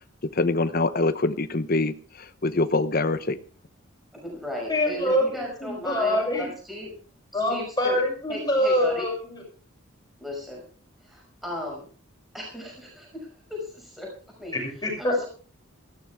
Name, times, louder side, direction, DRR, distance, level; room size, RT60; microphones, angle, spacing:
voice 1, 0.3-1.9 2.4-3.4, left 2 dB, 45° left, 12 dB, 0.9 m, -24 dB
voice 2, 4.1-6.9 7.3-8.0 8.3-9.1 10.2-10.6 11.0-11.8 12.3-14.1 14.4-14.5 15.0-15.3, left 1 dB, ahead, -1 dB, 5.9 m, -36 dB
voice 3, 4.7-5.3 5.6-6.5 7.3-9.4 14.5-15.3, left 1 dB, 20° left, 0 dB, 7.0 m, -25 dB
18.0 x 16.0 x 3.6 m, 0.39 s
head